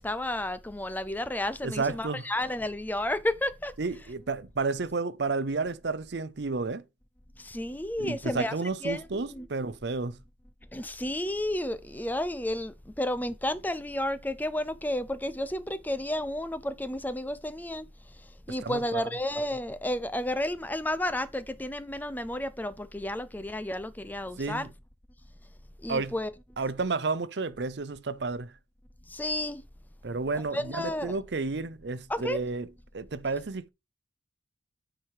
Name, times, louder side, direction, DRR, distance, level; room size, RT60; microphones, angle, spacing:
voice 1, 0.0-3.7 7.4-8.6 8.8-9.5 10.7-17.9 18.5-24.6 25.8-26.3 29.1-29.6 30.5-31.1 32.1-32.4, left 1 dB, 10° left, 0.5 m, -32 dB
voice 2, 1.6-2.3 3.8-6.8 8.0-10.2 18.6-19.1 24.4-24.7 25.9-26.1 26.6-28.5 30.0-32.7 32.9-33.7, right 3 dB, 60° right, 0.6 m, -31 dB
9.3 x 4.7 x 4.7 m
head